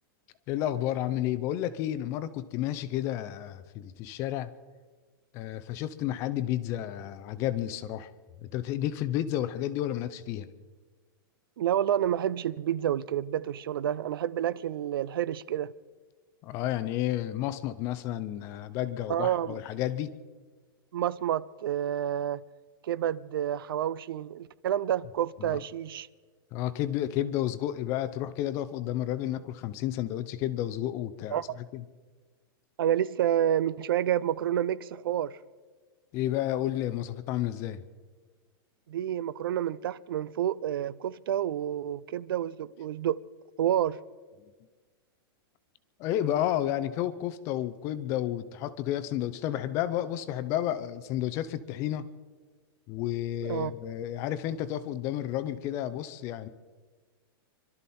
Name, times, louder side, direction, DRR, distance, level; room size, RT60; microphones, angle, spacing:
voice 1, 0.5-4.5 5.3-8.1 8.4-10.5 16.4-20.1 25.4-25.6 26.5-31.4 31.7-31.8 36.1-37.8 44.4-44.5 46.0-52.1 52.9-56.5, left 12 dB, 20° left, 0.5 m, -31 dB
voice 2, 11.6-15.7 19.1-19.6 20.9-22.4 22.8-26.1 31.3-31.6 32.8-35.4 38.9-43.2 43.6-44.0 53.4-53.7, right 11 dB, 70° right, 0.5 m, -29 dB
25.5 x 12.5 x 4.3 m
supercardioid pair, 175°, 12 cm